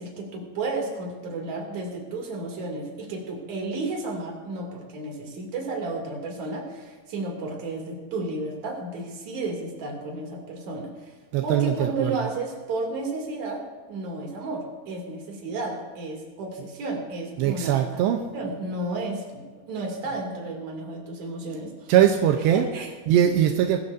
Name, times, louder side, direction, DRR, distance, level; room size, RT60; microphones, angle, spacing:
voice 1, 0.0-11.2 11.4-18.0 18.3-21.9 22.5-22.9, right 2 dB, 45° right, 0 dB, 3.6 m, -32 dB
voice 2, 11.3-12.2 17.4-18.2 21.9-22.7 23.1-23.8, right 10 dB, 85° right, 4 dB, 2.9 m, -21 dB
22.0 x 15.0 x 2.7 m, 1.4 s
omnidirectional pair, 4.9 m